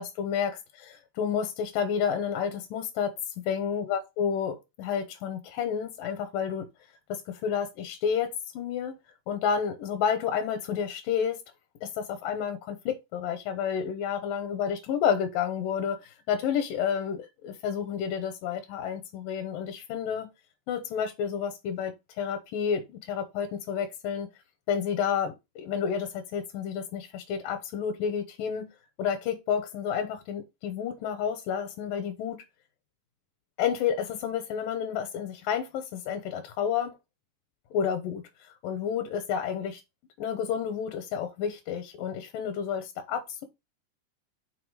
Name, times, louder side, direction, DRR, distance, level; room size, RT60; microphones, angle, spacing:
voice 1, 0.0-3.1 3.5-6.7 7.1-9.0 9.3-11.4 11.8-20.3 20.7-24.3 24.7-28.7 29.0-32.4 33.6-37.0 37.7-38.2 38.6-39.8 40.2-43.4, left 7 dB, 85° left, 2.6 m, -30 dB
6.0 x 4.3 x 4.8 m
omnidirectional pair, 3.8 m